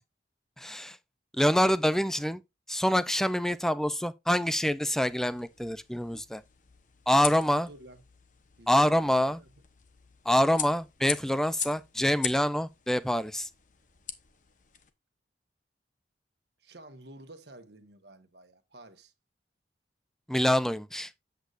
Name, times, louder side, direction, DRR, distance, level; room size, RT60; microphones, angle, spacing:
voice 1, 0.6-1.0 1.3-2.4 2.7-6.4 7.1-7.7 8.7-9.4 10.3-13.5 20.3-21.1, equal, 5° left, 0.4 m, -26 dB
sound 1, 5.0-14.9, left 9 dB, 45° left, 1.0 m, -41 dB
voice 2, 7.1-8.0 8.6-9.5 11.6-11.8 16.6-19.1, right 2 dB, 65° right, 1.4 m, -51 dB
8.2 x 7.9 x 2.5 m
head